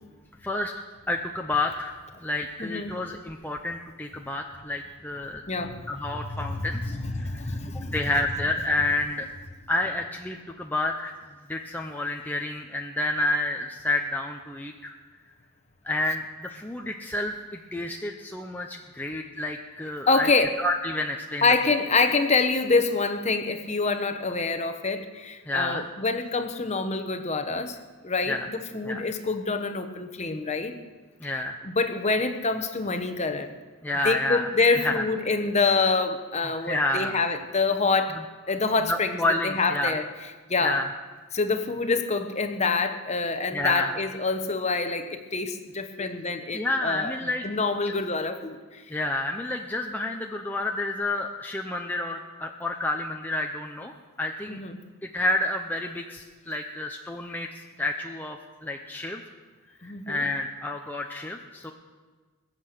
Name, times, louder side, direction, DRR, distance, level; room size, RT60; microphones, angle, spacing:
voice 1, 0.4-0.7 1.1-1.9 2.2-5.4 5.9-7.6 7.9-9.3 9.7-11.1 11.5-14.9 15.8-20.3 20.6-21.5 25.5-25.8 28.3-28.5 28.8-29.0 31.2-31.6 33.8-35.0 36.6-37.2 38.9-40.0 40.6-40.9 43.5-44.0 46.0-46.1 46.5-47.5 48.9-53.9 54.2-54.6 55.1-57.5 57.8-59.2 59.8-61.7, left 2 dB, 10° left, 2 dB, 0.6 m, -29 dB
voice 2, 2.6-2.9 5.5-5.8 6.1-8.0 20.1-20.6 21.4-27.8 28.0-30.8 31.3-33.6 34.0-38.2 38.5-40.0 40.5-40.8 41.3-47.1 47.4-48.8 54.5-54.8 59.8-60.3, left 3 dB, 30° left, 7 dB, 1.0 m, -26 dB
21.5 x 7.6 x 6.6 m, 1.4 s
head